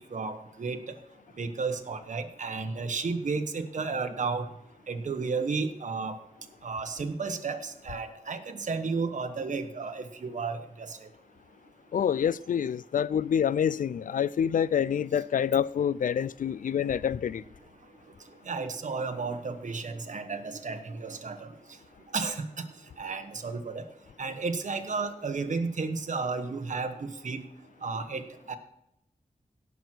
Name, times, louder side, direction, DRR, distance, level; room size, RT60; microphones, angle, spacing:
voice 1, 0.1-1.0 1.4-4.5 4.9-6.2 6.6-11.0 18.5-21.5 22.1-22.7 23.0-23.8 24.2-27.4 27.8-28.2 28.5-28.6, right 4 dB, 65° right, 1.2 m, -33 dB
voice 2, 11.9-17.4, left 8 dB, 75° left, 0.4 m, -27 dB
17.0 x 6.2 x 4.5 m
wide cardioid pair, 85°, 14 cm